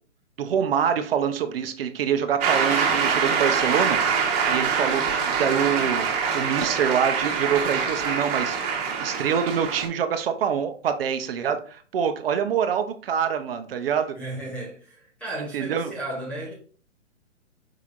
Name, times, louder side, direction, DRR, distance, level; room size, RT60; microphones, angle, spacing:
voice 1, 0.4-6.1 6.3-14.1 15.4-15.9, right 8 dB, 50° right, 0.7 m, -26 dB
Shout / Cheering / Applause, 2.4-9.9, right 6 dB, 30° right, 1.2 m, -24 dB
voice 2, 14.2-16.5, right 1 dB, 5° left, 0.5 m, -34 dB
4.8 x 4.5 x 2.5 m
hypercardioid pair, 135°, 37 cm